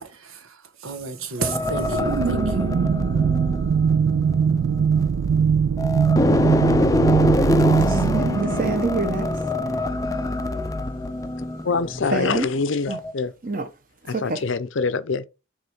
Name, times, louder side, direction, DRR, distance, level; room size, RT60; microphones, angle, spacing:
voice 1, 0.0-2.8, right 4 dB, 90° right, 1.3 m, -32 dB
sound 1, 1.4-5.4 5.8-12.5 12.9-13.1, left 2 dB, 15° left, 0.4 m, -25 dB
sound 2, 1.6-9.9, right 6 dB, 65° right, 0.3 m, -21 dB
voice 2, 7.7-9.4 12.1-12.5 12.9-13.0 13.4-13.7 14.1-14.4, right 3 dB, 40° right, 1.1 m, -27 dB
voice 3, 11.6-13.3 14.1-15.3, left 4 dB, 70° left, 0.6 m, -25 dB
7.6 x 3.2 x 5.4 m
head